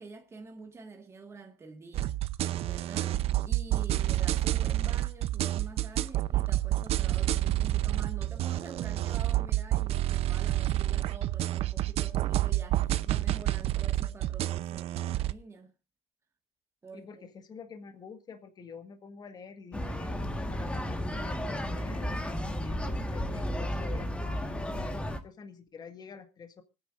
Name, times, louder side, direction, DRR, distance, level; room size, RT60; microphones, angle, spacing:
voice 1, 0.0-2.2 2.6-15.7 16.8-17.1, right 4 dB, 25° right, 1.7 m, -47 dB
sound 1, 1.9-15.3, right 14 dB, 60° right, 0.7 m, -29 dB
voice 2, 16.9-26.6, left 6 dB, 35° left, 1.7 m, -48 dB
sound 2, 19.7-25.2, equal, 10° left, 1.5 m, -33 dB
25.5 x 9.6 x 2.6 m
cardioid pair, 125°, 12 cm